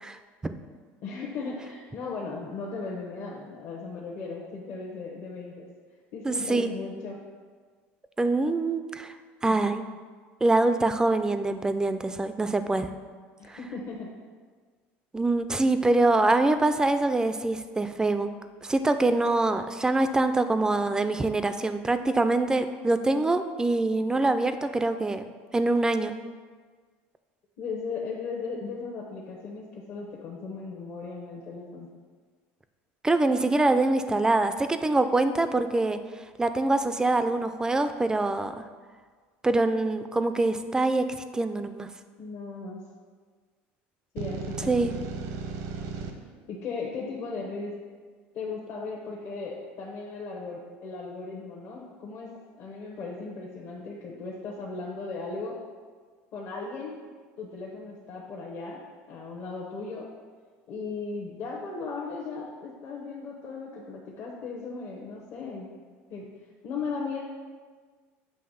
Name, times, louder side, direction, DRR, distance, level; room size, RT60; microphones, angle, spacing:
voice 1, 0.0-0.5 6.2-6.7 8.2-9.1 9.4-9.8 10.4-12.9 13.5-13.6 15.1-18.3 18.6-25.3 25.5-26.1 33.0-36.0 36.4-38.5 39.4-41.0 41.3-41.9 44.7-44.9, right 2 dB, 10° right, 10 dB, 0.4 m, -24 dB
voice 2, 1.0-5.7 6.1-7.2 9.4-9.7 13.4-14.1 27.6-31.9 42.2-42.8 44.1-44.9 46.5-47.7 48.3-52.3 52.6-55.6 56.3-57.0 57.4-60.1 60.7-65.7 66.1-66.3 66.6-67.2, left 4 dB, 55° left, -3 dB, 1.0 m, -37 dB
sound 1, 44.2-46.1, right 5 dB, 75° right, 0.9 m, -35 dB
7.7 x 3.0 x 5.6 m, 1.5 s
supercardioid pair, 110°, 6 cm